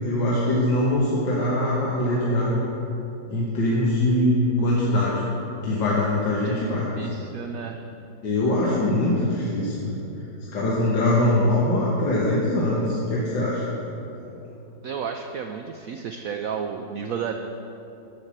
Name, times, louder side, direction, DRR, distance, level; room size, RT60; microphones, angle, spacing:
voice 1, 0.0-2.6 3.3-5.2 5.6-7.1 8.2-10.0 10.5-13.7, left 1 dB, 75° left, -6 dB, 1.9 m, -22 dB
voice 2, 6.4-7.8 14.8-17.3, right 7 dB, 85° right, 5 dB, 0.7 m, -32 dB
8.7 x 6.6 x 7.3 m, 2.9 s
omnidirectional pair, 2.0 m